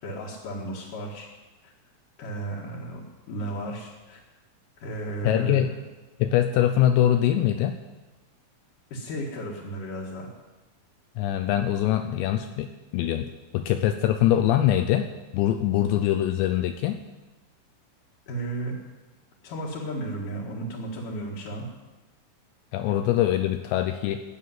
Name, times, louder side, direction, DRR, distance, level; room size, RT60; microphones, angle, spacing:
voice 1, 0.0-1.3 1.6-1.7 2.2-3.0 3.3-4.2 4.8-5.6 8.9-10.3 18.3-18.7 19.4-21.7, right 1 dB, 60° left, -5 dB, 2.5 m, -34 dB
voice 2, 5.2-5.7 6.2-7.8 11.2-15.1 15.3-17.0 22.7-24.2, left 12 dB, 85° left, 8 dB, 2.5 m, -23 dB
15.5 x 6.8 x 9.5 m, 1.2 s
omnidirectional pair, 5.7 m